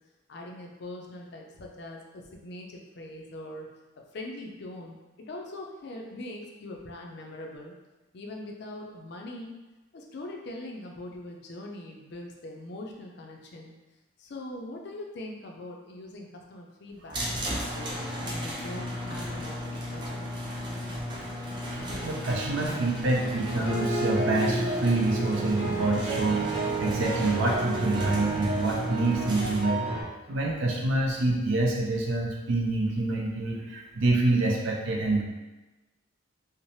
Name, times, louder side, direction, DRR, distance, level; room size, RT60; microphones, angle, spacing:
voice 1, 0.3-3.7 4.0-7.7 8.1-9.5 9.9-13.7 14.2-17.2 17.5-20.3, left 1 dB, 55° left, 0 dB, 0.4 m, -42 dB
sound 1, 17.1-29.6, equal, 25° right, 0.4 m, -35 dB
voice 2, 21.7-29.9 30.3-35.2, right 2 dB, 75° right, -1 dB, 0.5 m, -27 dB
sound 2, 21.8-30.0, right 2 dB, 40° right, 0.9 m, -31 dB
3.1 x 2.0 x 2.6 m, 1.1 s
head